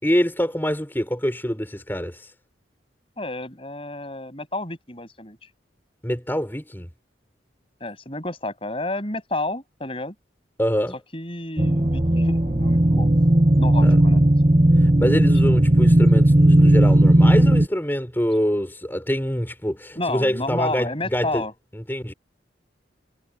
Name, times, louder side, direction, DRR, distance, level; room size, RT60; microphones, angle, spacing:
voice 1, 0.0-2.3 6.0-6.9 10.6-10.9 13.8-14.0 14.8-21.5 21.7-22.1, equal, 10° left, 5.6 m, -25 dB
voice 2, 3.2-5.4 7.8-10.1 11.1-13.1 13.6-14.2 20.0-21.5, left 2 dB, 30° left, 8.0 m, -30 dB
sound 1, 11.6-17.7, right 1 dB, 35° right, 1.3 m, -16 dB
head